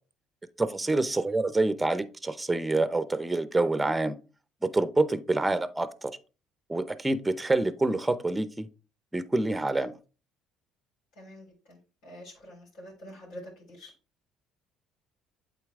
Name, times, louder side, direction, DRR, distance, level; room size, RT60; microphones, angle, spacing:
voice 1, 0.6-4.1 4.6-6.1 6.7-8.7 9.1-9.9, right 2 dB, 10° right, 0.7 m, -27 dB
voice 2, 11.2-11.8 12.0-13.4 13.8-13.9, equal, 70° left, 3.9 m, -46 dB
8.3 x 4.0 x 3.6 m
supercardioid pair, 95°, 0 cm